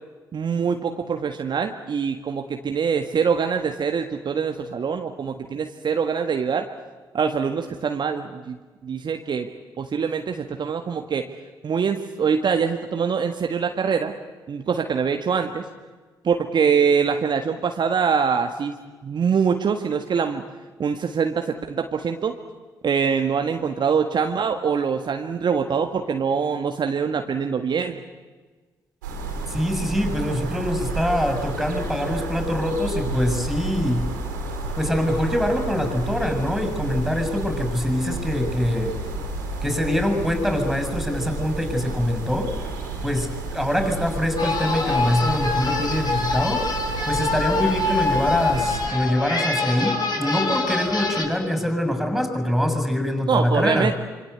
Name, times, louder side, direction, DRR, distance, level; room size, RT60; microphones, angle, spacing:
voice 1, 0.3-6.7 7.1-8.6 8.8-9.5 9.8-11.3 11.6-14.1 14.5-15.6 16.2-18.7 19.0-20.4 20.8-22.3 22.8-28.0 53.3-53.9, right 6 dB, 50° right, 5 dB, 1.7 m, -24 dB
sound 1, 29.0-48.9, right 2 dB, 85° right, 4.7 m, -31 dB
voice 2, 29.5-34.1 34.8-39.0 39.6-42.6 43.0-46.7 47.1-53.9, left 1 dB, ahead, 8 dB, 6.4 m, -24 dB
sound 2, 44.4-51.2, left 3 dB, 40° left, 6.1 m, -25 dB
26.5 x 24.5 x 8.2 m, 1.3 s
figure-of-eight pair, 40°, 10 cm